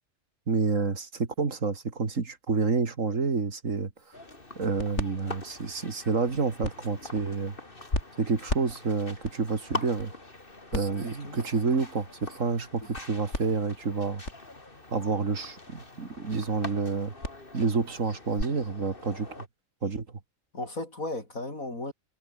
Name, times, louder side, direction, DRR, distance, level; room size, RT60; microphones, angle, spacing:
voice 1, 0.5-3.9 4.6-7.5 8.2-10.1 10.7-14.2 14.9-17.1 17.5-19.3 19.8-20.1, right 4 dB, 70° right, 2.7 m, -29 dB
sound 1, 4.0-18.4, left 1 dB, 55° left, 6.8 m, -39 dB
sound 2, 4.1-19.5, left 2 dB, 40° left, 3.8 m, -44 dB
voice 2, 11.0-11.5 20.5-21.9, left 2 dB, 80° left, 7.2 m, -36 dB
omnidirectional pair, 1.4 m